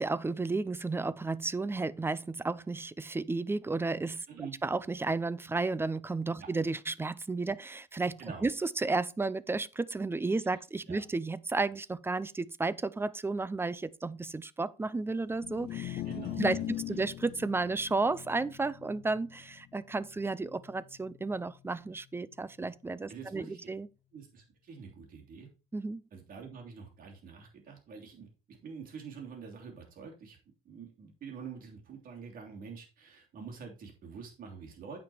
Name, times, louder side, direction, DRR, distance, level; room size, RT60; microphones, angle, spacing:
voice 1, 0.0-16.0 16.4-16.6 16.9-23.9 25.7-26.0, right 3 dB, 15° right, 0.4 m, -33 dB
sound 1, 15.3-21.7, left 14 dB, 65° left, 1.2 m, -41 dB
voice 2, 16.0-16.8 23.1-23.7 24.1-25.5 26.1-30.4 30.6-35.0, right 6 dB, 55° right, 3.2 m, -46 dB
9.1 x 5.3 x 4.4 m
cardioid pair, 110°, 17 cm